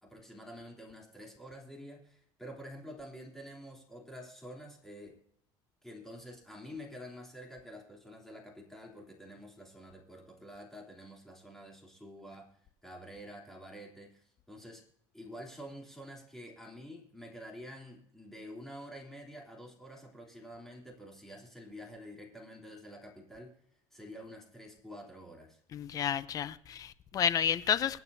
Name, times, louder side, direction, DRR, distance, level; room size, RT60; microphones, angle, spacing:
voice 1, 0.0-5.2 5.8-12.5 12.8-14.8 15.1-23.6 23.9-25.6, equal, 5° left, 3.4 m, -48 dB
voice 2, 25.7-28.0, left 8 dB, 35° left, 0.7 m, -31 dB
24.5 x 8.9 x 2.8 m
cardioid pair, 140°, 10 cm